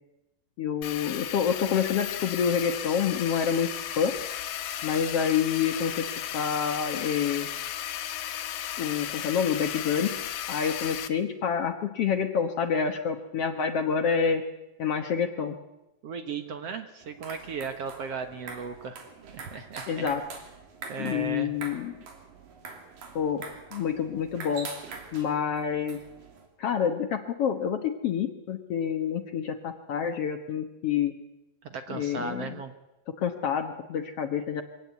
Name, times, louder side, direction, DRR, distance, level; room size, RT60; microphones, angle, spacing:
voice 1, 0.6-3.7 4.0-4.2 4.8-6.1 6.3-7.5 8.8-10.2 10.5-14.4 14.8-15.6 19.9-20.2 21.0-22.0 23.2-23.4 23.7-24.7 25.1-26.0 26.6-31.1 31.9-32.6 33.2-34.6, left 7 dB, 60° left, 7 dB, 1.9 m, -27 dB
sound 1, 0.8-11.1, left 11 dB, 80° left, 2.8 m, -35 dB
voice 2, 16.0-19.0 19.3-20.1 20.9-21.5 31.7-32.7, right 5 dB, 55° right, 8 dB, 2.1 m, -36 dB
sound 2, 17.0-26.5, right 4 dB, 90° right, 4.7 m, -44 dB
24.0 x 17.5 x 8.3 m, 0.96 s
omnidirectional pair, 3.8 m